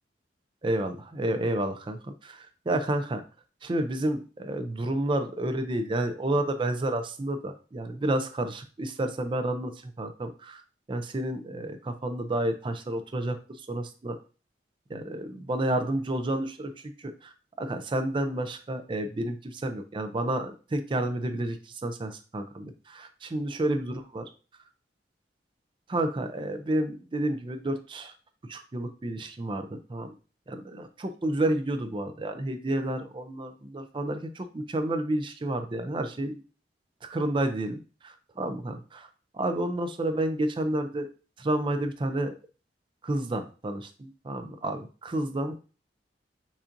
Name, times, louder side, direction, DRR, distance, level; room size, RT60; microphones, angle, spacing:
voice 1, 0.6-3.2 3.6-10.6 10.9-13.4 13.7-14.2 14.9-16.7 17.0-24.3 25.9-28.1 28.5-30.2 30.5-36.4 37.0-39.1 39.3-41.1 41.4-42.3 43.0-45.6, right 1 dB, 30° right, 8 dB, 0.4 m, -30 dB
7.0 x 2.5 x 2.5 m, 0.35 s
head